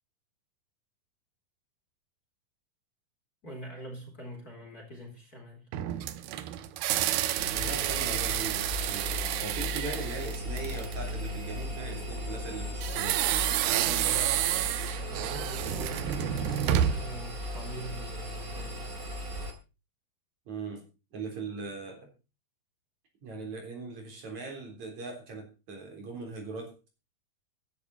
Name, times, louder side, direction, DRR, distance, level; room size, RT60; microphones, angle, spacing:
voice 1, 3.4-5.7 13.8-14.7 15.0-18.8, equal, 25° left, 2 dB, 3.9 m, -44 dB
sound 1, 5.7-11.1 12.8-17.2, right 12 dB, 85° right, 2.9 m, -30 dB
Engine, 7.4-19.5, left 1 dB, 25° right, 2.8 m, -37 dB
voice 2, 7.5-9.1 9.4-13.2 20.5-20.8 21.1-22.1 23.2-26.9, right 4 dB, 50° right, 3 dB, 4.9 m, -40 dB
15.5 x 12.0 x 4.2 m, 0.31 s
omnidirectional pair, 4.3 m